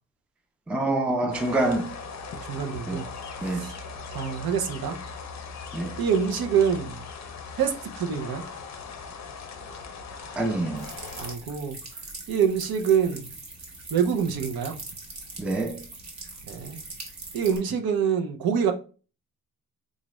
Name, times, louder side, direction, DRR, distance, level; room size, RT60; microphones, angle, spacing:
voice 1, 0.7-1.9 2.9-3.1 3.4-3.7 5.7-6.0 10.4-10.9 15.4-15.8, right 2 dB, 5° right, 0.3 m, -26 dB
sound 1, 1.3-11.3, left 5 dB, 45° left, 0.5 m, -39 dB
voice 2, 2.5-3.0 3.5-3.7 4.1-5.0 6.0-7.0 7.6-8.4 11.2-11.8 12.3-13.3 13.9-14.7 16.5-16.8 17.3-18.7, right 7 dB, 70° right, 0.7 m, -25 dB
sound 2, 10.8-17.6, right 3 dB, 45° right, 0.9 m, -42 dB
4.0 x 2.4 x 3.0 m
wide cardioid pair, 180°, 37 cm